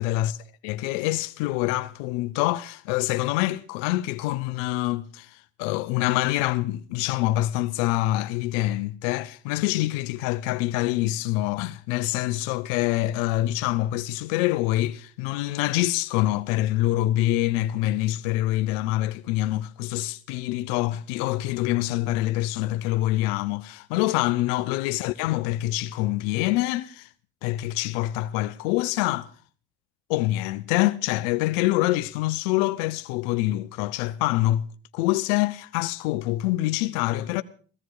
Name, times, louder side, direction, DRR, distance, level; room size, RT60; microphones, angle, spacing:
voice 1, 0.0-0.4 0.6-27.1 27.4-29.3 30.1-34.6 34.9-37.4, left 16 dB, 90° left, 0.7 m, -25 dB
16.5 x 15.5 x 4.8 m
supercardioid pair, 80°, 37 cm